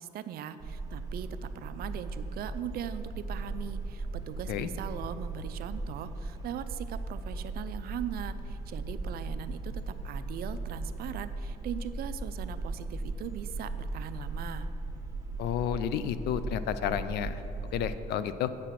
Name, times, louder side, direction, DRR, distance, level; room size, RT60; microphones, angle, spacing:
voice 1, 0.0-14.7, right 10 dB, 65° right, 12 dB, 0.5 m, -40 dB
sound 1, 0.6-18.0, right 2 dB, 20° right, 1.3 m, -37 dB
voice 2, 15.4-17.4 17.7-18.5, left 9 dB, 75° left, 13 dB, 0.5 m, -31 dB
8.1 x 6.4 x 5.9 m, 2.9 s
cardioid pair, 110°, 17 cm